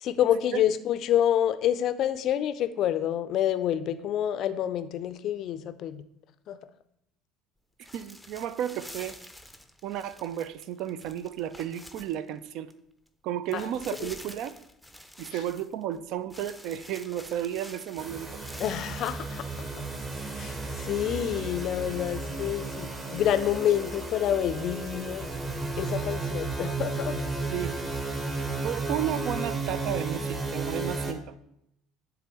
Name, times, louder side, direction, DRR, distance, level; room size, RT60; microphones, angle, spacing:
voice 1, 0.0-6.0 6.5-6.6 13.5-13.7 14.0-14.1 18.6-19.7 20.3-25.3 25.8-27.2, left 10 dB, 50° left, 12 dB, 0.4 m, -28 dB
sound 1, 7.8-12.7 13.1-13.2 13.5-16.0 16.3-19.2, left 1 dB, ahead, 0.6 m, -48 dB
voice 2, 7.9-9.2 9.8-12.7 13.2-14.5 15.2-18.3 27.5-27.8 28.6-31.3, right 11 dB, 55° right, 16 dB, 0.3 m, -33 dB
sound 2, 18.0-31.1, right 3 dB, 25° right, 1.1 m, -33 dB
10.5 x 3.6 x 3.1 m, 0.77 s
figure-of-eight pair, 60°, 0 cm